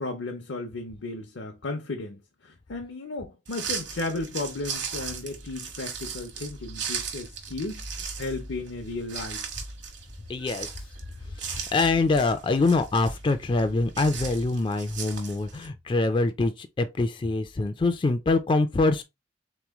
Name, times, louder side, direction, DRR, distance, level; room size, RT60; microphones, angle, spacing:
voice 1, 0.0-9.4, left 3 dB, 80° left, 0.7 m, -34 dB
sound 1, 3.5-15.7, right 6 dB, 70° right, 1.2 m, -37 dB
voice 2, 10.3-10.7 11.4-19.0, left 3 dB, 25° left, 0.3 m, -24 dB
3.7 x 3.0 x 3.5 m
head